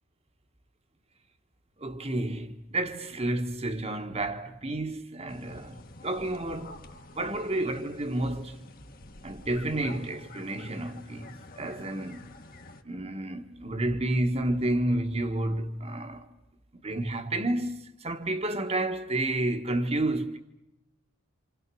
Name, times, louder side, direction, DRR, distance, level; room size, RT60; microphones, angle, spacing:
voice 1, 1.8-5.8 6.0-6.8 7.2-8.7 9.2-12.3 12.8-16.3 16.7-20.4, right 1 dB, 30° right, 1.5 m, -30 dB
sound 1, 5.3-12.8, left 2 dB, 40° left, 1.4 m, -48 dB
29.0 x 27.0 x 6.3 m
head